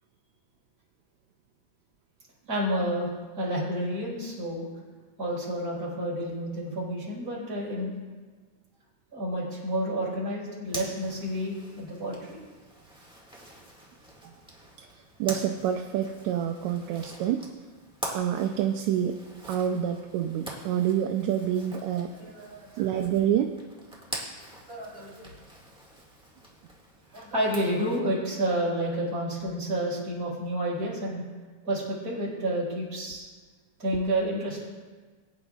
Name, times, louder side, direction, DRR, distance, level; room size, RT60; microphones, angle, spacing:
voice 1, 2.5-3.1 3.4-4.7 5.2-7.9 9.1-12.4 22.2-22.7 24.7-25.3 27.1-31.2 31.6-33.3 33.8-34.6, right 1 dB, 30° right, -6 dB, 4.6 m, -30 dB
Zipper (clothing), 10.6-28.0, right 1 dB, 5° right, 0.9 m, -44 dB
voice 2, 15.2-17.4 18.1-19.2 19.5-22.1 22.8-23.5, right 10 dB, 80° right, 5 dB, 1.8 m, -27 dB
22.0 x 9.8 x 2.4 m, 1.4 s
omnidirectional pair, 3.7 m